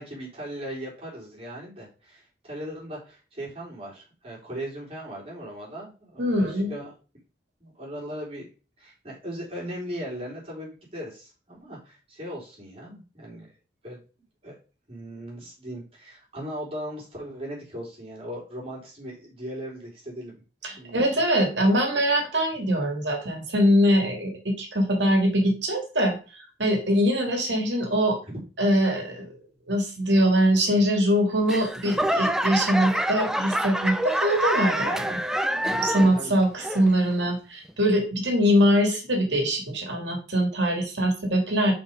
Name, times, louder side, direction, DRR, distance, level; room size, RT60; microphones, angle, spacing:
voice 1, 0.0-6.9 7.6-8.5 8.8-13.5 13.8-14.0 14.4-14.6 14.9-20.4 20.8-21.0 36.1-36.3, equal, 35° right, -5 dB, 3.9 m, -38 dB
voice 2, 6.2-6.7 20.6-28.2 28.6-29.3 29.7-35.2 35.6-41.7, equal, 70° right, 3 dB, 2.4 m, -23 dB
Laughter / Clapping / Crowd, 31.5-36.3 36.6-37.1 37.7-37.8, equal, 5° right, 0.4 m, -27 dB
5.9 x 4.8 x 5.2 m, 0.34 s
head